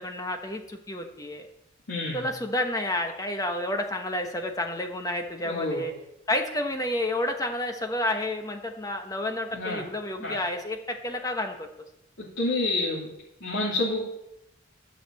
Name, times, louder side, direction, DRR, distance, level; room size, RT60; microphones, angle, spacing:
voice 1, 0.0-1.4 2.1-5.9 6.3-11.7, left 1 dB, 20° left, 4 dB, 1.0 m, -30 dB
voice 2, 1.9-2.3 5.4-5.8 9.5-9.8 10.2-10.3 12.2-13.1 13.4-14.0, left 2 dB, 75° left, -7 dB, 2.9 m, -28 dB
11.5 x 6.6 x 7.6 m, 0.81 s
head